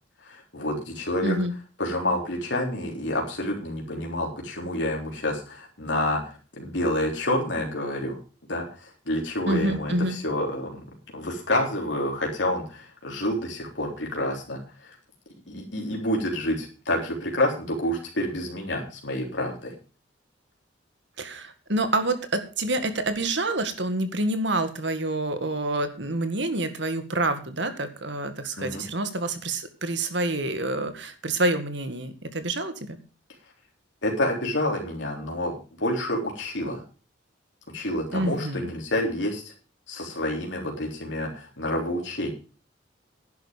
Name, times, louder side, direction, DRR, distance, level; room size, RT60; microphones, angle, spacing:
voice 1, 0.2-1.4 1.8-8.2 8.5-10.8 11.1-15.0 15.5-19.7 28.6-28.8 34.0-35.5 35.8-36.8 37.7-39.5 39.9-42.3, left 1 dB, 65° left, 0 dB, 3.6 m, -28 dB
voice 2, 1.2-1.5 9.5-10.2 21.2-33.0 38.1-38.7, right 2 dB, 65° right, 9 dB, 2.0 m, -27 dB
11.0 x 11.0 x 5.2 m, 0.36 s
head